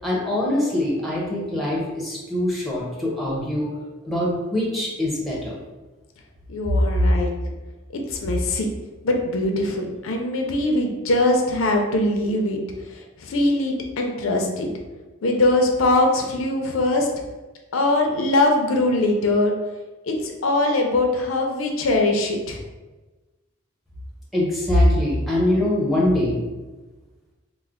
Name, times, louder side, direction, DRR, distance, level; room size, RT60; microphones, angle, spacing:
voice 1, 0.0-3.7 4.0-5.6 6.7-6.8 24.3-26.4, left 1 dB, ahead, -4 dB, 0.8 m, -23 dB
voice 2, 6.5-7.3 7.9-8.7 9.0-12.6 13.2-14.7 15.2-17.1 17.7-19.5 20.0-22.6, left 2 dB, 80° left, 2 dB, 0.5 m, -21 dB
3.2 x 2.1 x 3.6 m, 1.2 s
head